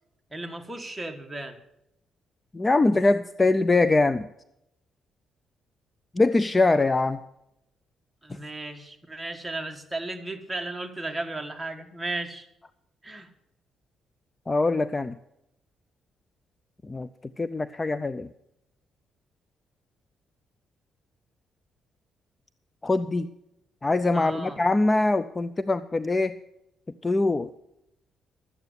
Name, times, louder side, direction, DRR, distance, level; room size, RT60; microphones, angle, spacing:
voice 1, 0.3-1.6 8.2-12.5 13.0-13.3 24.1-24.6, right 2 dB, 10° right, 4 dB, 1.6 m, -35 dB
voice 2, 2.5-4.3 6.1-7.2 14.5-15.2 16.9-17.1 17.4-18.3 22.8-23.3 23.8-26.4 27.0-27.5, left 2 dB, 20° left, 15 dB, 0.4 m, -23 dB
12.0 x 8.9 x 8.1 m, 0.84 s
cardioid pair, 90°, 0 cm